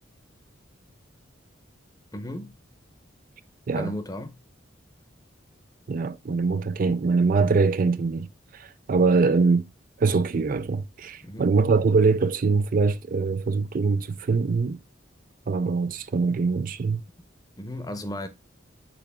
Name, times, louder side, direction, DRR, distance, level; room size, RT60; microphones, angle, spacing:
voice 1, 2.1-2.5 3.8-4.4 11.2-11.5 17.6-18.3, left 1 dB, 20° left, 0.8 m, -34 dB
voice 2, 5.9-8.3 8.5-9.7 10.0-14.8 15.5-17.0, right 4 dB, 45° right, 0.4 m, -23 dB
7.0 x 4.6 x 3.5 m
head